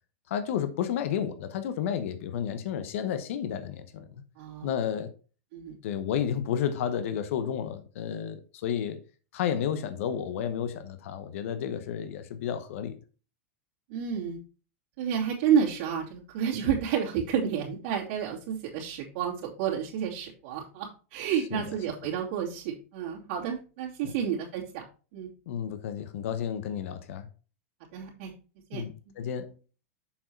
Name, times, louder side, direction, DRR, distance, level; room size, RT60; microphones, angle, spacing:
voice 1, 0.3-4.2 4.6-5.1 5.8-9.0 9.3-13.0 16.6-16.7 21.5-21.7 24.0-24.1 25.5-27.3 28.7-29.6, left 9 dB, 70° left, 1.0 m, -32 dB
voice 2, 4.4-4.7 5.5-5.8 13.9-14.4 15.0-24.8 25.1-25.3 27.9-28.3 28.7-28.8, right 8 dB, 60° right, 2.6 m, -30 dB
7.1 x 4.8 x 4.6 m
supercardioid pair, 135°, 7 cm